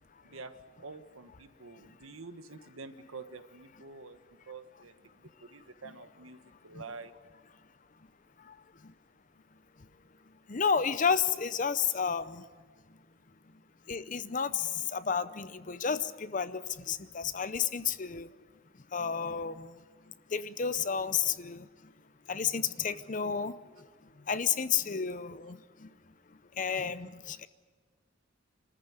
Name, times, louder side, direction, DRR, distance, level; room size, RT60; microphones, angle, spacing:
voice 1, 0.2-7.1, right 3 dB, 80° right, 9 dB, 1.3 m, -48 dB
voice 2, 10.5-12.5 13.9-18.3 18.9-19.7 20.3-21.7 22.3-23.5 24.3-25.9 26.6-27.5, left 7 dB, 40° left, 14 dB, 0.6 m, -31 dB
26.0 x 14.5 x 9.6 m, 1.5 s
head